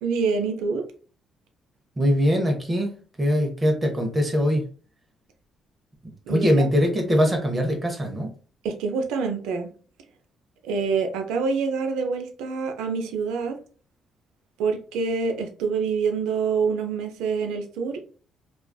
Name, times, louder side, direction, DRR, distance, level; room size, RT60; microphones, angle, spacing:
voice 1, 0.0-0.8 6.3-6.7 8.6-9.7 10.6-13.6 14.6-18.1, right 5 dB, 90° right, 5 dB, 0.4 m, -26 dB
voice 2, 2.0-2.9 3.2-4.6 6.0-8.3, equal, 25° right, 3 dB, 0.7 m, -22 dB
2.4 x 2.3 x 2.2 m, 0.39 s
cardioid pair, 75°, 0 cm